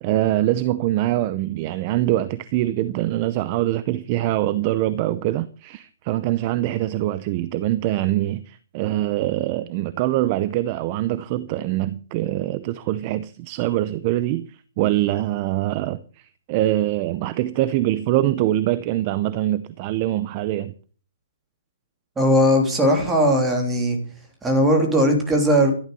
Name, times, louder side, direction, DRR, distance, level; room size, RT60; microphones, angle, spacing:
voice 1, 0.0-20.7, right 14 dB, 25° right, 0.6 m, -24 dB
voice 2, 22.2-24.0 24.4-25.7, equal, 5° right, 3.3 m, -18 dB
14.0 x 12.0 x 6.8 m
hypercardioid pair, 175°, 0 cm